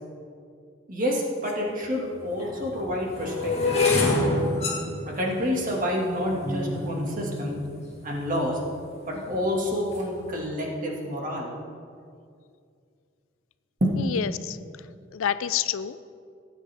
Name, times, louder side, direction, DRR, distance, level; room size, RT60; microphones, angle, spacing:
voice 1, 0.9-4.0 5.0-7.6 8.0-8.6 9.1-11.5 13.8-14.0, equal, 40° right, -1 dB, 2.0 m, -28 dB
sound 1, 1.5-1.6 2.3-8.5 9.1-9.5 9.8-10.1, left 2 dB, 30° left, 2.0 m, -27 dB
voice 2, 14.0-14.6 15.1-16.0, left 9 dB, 80° left, 14 dB, 0.4 m, -28 dB
17.5 x 8.7 x 3.5 m, 2.3 s
head